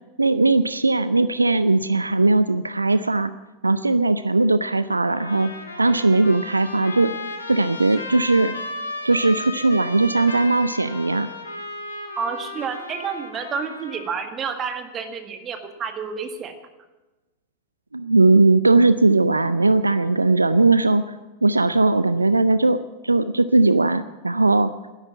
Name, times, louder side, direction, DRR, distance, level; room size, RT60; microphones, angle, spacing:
voice 1, 0.2-3.3 3.6-5.5 5.8-7.1 7.5-8.5 9.0-11.3 17.9-21.2 21.4-24.7, right 3 dB, 80° right, 15 dB, 0.4 m, -19 dB
Trumpet, 5.1-14.3, left 2 dB, 80° left, 2.1 m, -34 dB
voice 2, 12.2-16.5, right 6 dB, 25° right, 7 dB, 1.8 m, -30 dB
12.5 x 11.0 x 8.8 m, 1.1 s
figure-of-eight pair, 90°, 0 cm